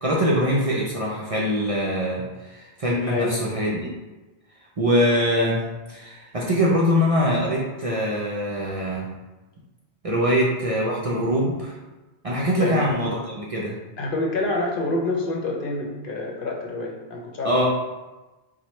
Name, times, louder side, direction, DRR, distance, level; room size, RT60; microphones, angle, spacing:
voice 1, 0.0-3.9 4.8-5.6 5.9-9.1 10.0-11.7 12.2-13.8 17.4-17.7, equal, 40° right, -4 dB, 0.5 m, -23 dB
voice 2, 3.1-3.4 10.3-10.4 12.6-12.9 14.0-17.5, left 2 dB, 60° left, 0 dB, 0.8 m, -27 dB
4.7 x 2.2 x 4.1 m, 1.1 s
omnidirectional pair, 1.1 m